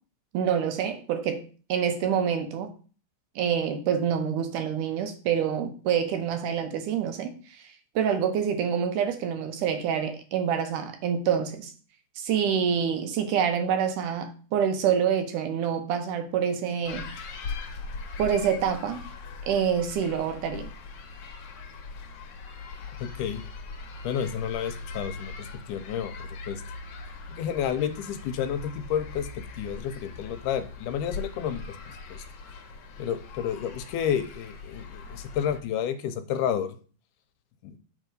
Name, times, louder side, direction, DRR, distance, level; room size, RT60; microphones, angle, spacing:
voice 1, 0.3-1.4 1.7-2.7 3.4-7.3 8.0-11.7 12.2-17.1 18.2-19.0 19.4-20.7, right 8 dB, 75° right, 2.4 m, -26 dB
sound 1, 16.9-35.6, left 4 dB, 60° left, 1.7 m, -40 dB
voice 2, 23.0-23.4 24.0-26.6 27.3-31.6 32.1-32.2 33.0-36.7 37.6-37.8, left 8 dB, 80° left, 2.1 m, -30 dB
8.7 x 3.7 x 5.1 m
omnidirectional pair, 3.7 m